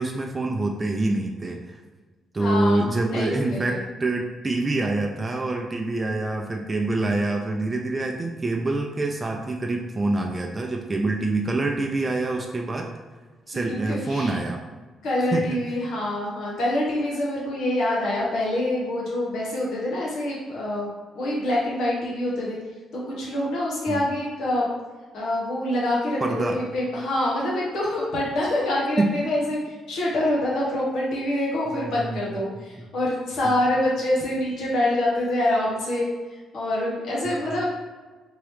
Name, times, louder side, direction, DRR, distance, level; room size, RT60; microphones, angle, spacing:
voice 1, 0.0-1.8 2.3-12.9 13.5-14.6 15.3-15.6 23.9-24.0 26.2-26.6 29.0-29.1 31.8-32.2, right 2 dB, 25° right, 1 dB, 0.4 m, -26 dB
voice 2, 2.4-2.8 3.1-3.8 13.5-14.4 15.0-20.9 21.1-22.6 22.9-24.7 25.1-37.7, left 1 dB, 75° left, -4 dB, 1.2 m, -26 dB
3.7 x 3.0 x 3.1 m, 1.3 s
cardioid pair, 90°, 0 cm